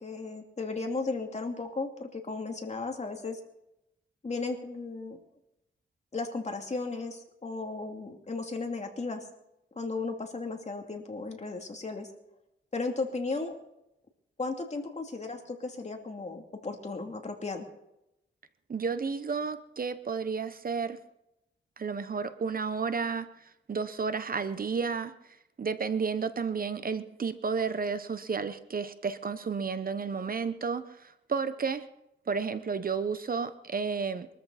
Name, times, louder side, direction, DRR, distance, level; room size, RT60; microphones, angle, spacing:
voice 1, 0.0-3.4 4.2-5.2 6.1-9.2 9.8-12.1 12.7-13.6 14.4-17.7, left 3 dB, 35° left, 2 dB, 2.8 m, -35 dB
voice 2, 18.7-21.0 21.8-25.1 25.6-31.9 32.3-34.3, right 5 dB, 45° right, 12 dB, 0.9 m, -32 dB
23.0 x 13.5 x 4.2 m, 0.86 s
wide cardioid pair, 100°, 20 cm